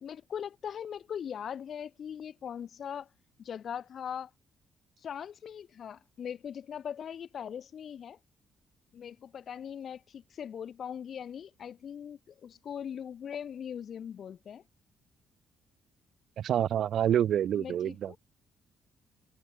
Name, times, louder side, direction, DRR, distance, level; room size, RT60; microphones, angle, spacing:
voice 1, 0.0-3.1 3.4-4.3 5.0-8.2 8.9-14.6 17.5-18.2, left 8 dB, 60° left, 1.0 m, -40 dB
voice 2, 16.4-18.2, right 10 dB, 70° right, 0.4 m, -27 dB
cardioid pair, 90°, 0 cm